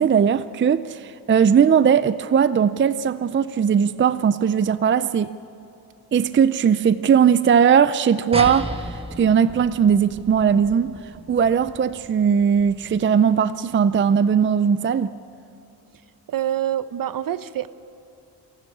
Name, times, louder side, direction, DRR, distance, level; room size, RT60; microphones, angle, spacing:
voice 1, 0.0-5.3 6.1-11.0 11.3-15.1, right 7 dB, 30° right, 0.5 m, -19 dB
sound 1, 8.3-13.2, right 2 dB, 15° right, 1.4 m, -34 dB
voice 2, 16.3-17.7, right 11 dB, 60° right, 0.8 m, -26 dB
27.5 x 12.5 x 8.6 m
cardioid pair, 105°, 39 cm